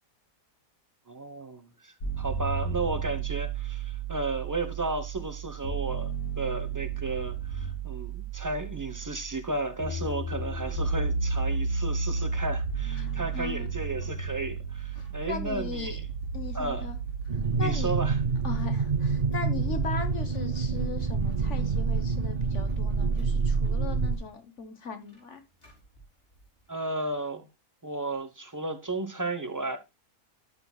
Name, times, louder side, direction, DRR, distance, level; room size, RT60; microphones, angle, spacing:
voice 1, 1.1-16.1 16.5-16.9 17.3-18.2 26.7-27.5 27.8-29.8, right 2 dB, 20° right, 0.6 m, -34 dB
sound 1, 2.0-20.0, right 5 dB, 80° left, 3.0 m, -33 dB
sound 2, 10.0-11.2 11.5-13.4 14.0-14.3 14.6-14.7 14.9-15.3 16.1-26.9, left 1 dB, 35° left, 3.5 m, -51 dB
voice 2, 13.0-13.7 15.2-16.0 16.3-17.0 17.6-17.9 18.4-25.4, left 5 dB, 50° left, 1.3 m, -38 dB
sound 3, 17.3-24.2, right 4 dB, 75° right, 0.3 m, -27 dB
12.0 x 5.9 x 2.3 m
omnidirectional pair, 1.6 m